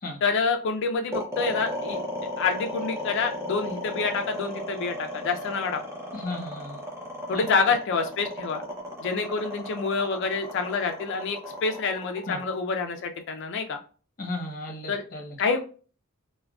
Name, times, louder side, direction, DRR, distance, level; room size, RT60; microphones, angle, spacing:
voice 1, 0.2-2.0 2.4-5.8 7.3-8.6 9.0-13.8 14.9-15.0 15.4-15.6, left 4 dB, 60° left, 5 dB, 0.4 m, -27 dB
sound 1, 1.1-13.4, left 1 dB, 15° right, 0.7 m, -34 dB
voice 2, 6.1-6.8 7.3-7.4 12.3-12.4 14.2-15.3, left 2 dB, 45° left, 2 dB, 0.9 m, -35 dB
3.4 x 2.1 x 2.3 m, 0.38 s
head